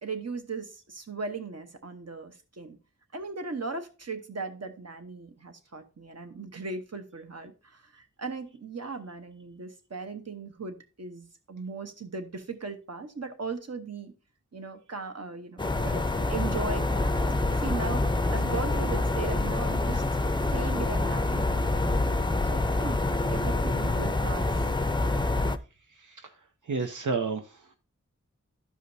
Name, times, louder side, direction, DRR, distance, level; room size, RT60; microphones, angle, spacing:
voice 1, 0.0-2.8 3.1-14.1 14.5-20.0 20.5-21.8 22.5-23.0 23.3-24.7 26.8-26.9, right 4 dB, 55° right, 7 dB, 1.0 m, -38 dB
sound 1, 15.6-25.6, left 2 dB, 15° left, 0.5 m, -26 dB
voice 2, 25.9-27.7, right 4 dB, 80° right, 5 dB, 0.6 m, -32 dB
12.5 x 5.0 x 2.7 m, 0.32 s
wide cardioid pair, 50°, 30 cm